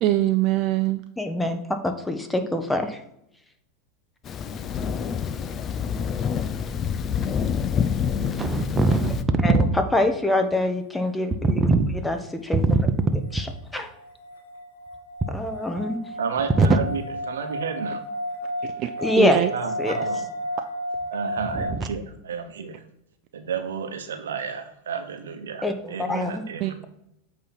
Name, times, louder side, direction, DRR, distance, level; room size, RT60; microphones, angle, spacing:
voice 1, 0.0-1.0 18.6-18.9 19.2-19.5 26.6-26.8, right 15 dB, 50° right, 8 dB, 0.4 m, -23 dB
voice 2, 1.2-3.0 9.4-9.7 9.9-11.6 12.0-12.6 13.3-13.5 13.7-13.9 15.3-16.0 19.0-19.4 19.8-19.9 25.6-26.4, left 2 dB, 10° left, 7 dB, 0.9 m, -25 dB
Thunder, 4.3-9.2, left 7 dB, 35° left, 0.5 m, -27 dB
voice 3, 8.4-9.2 9.4-9.6 11.4-11.9 12.5-13.2 16.6-16.7 21.5-21.6, right 3 dB, 20° right, 7 dB, 0.7 m, -20 dB
sound 1, 13.3-21.7, equal, 85° left, 1.1 m, -33 dB
voice 4, 16.2-18.0 19.5-20.3 21.1-22.8 23.3-26.8, right 6 dB, 85° right, 6 dB, 0.9 m, -31 dB
8.4 x 3.0 x 5.6 m, 0.79 s
hypercardioid pair, 105°, 0 cm